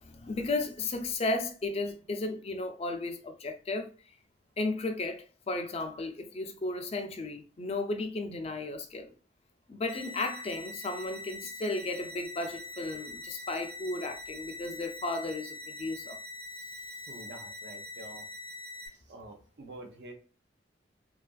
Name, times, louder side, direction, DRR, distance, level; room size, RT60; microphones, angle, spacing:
voice 1, 0.0-3.9 4.6-9.1 9.7-16.2, left 2 dB, 35° left, 0.4 m, -34 dB
sound 1, 9.9-18.9, left 2 dB, 40° right, 1.2 m, -43 dB
voice 2, 17.1-18.3 18.9-20.1, right 1 dB, 60° right, 0.6 m, -47 dB
2.8 x 2.4 x 2.3 m
head